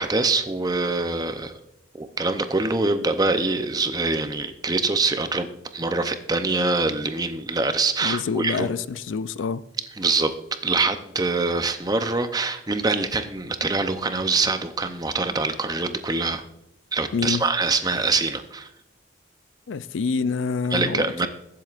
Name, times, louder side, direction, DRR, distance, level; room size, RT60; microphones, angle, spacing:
voice 1, 0.0-1.5 2.0-5.5 5.7-8.7 10.0-10.3 10.6-16.4 16.9-18.7 20.7-21.3, right 3 dB, 20° right, 0.6 m, -24 dB
voice 2, 8.0-9.6 17.1-17.4 19.7-21.3, left 5 dB, 85° left, 0.4 m, -26 dB
22.0 x 7.6 x 2.5 m
head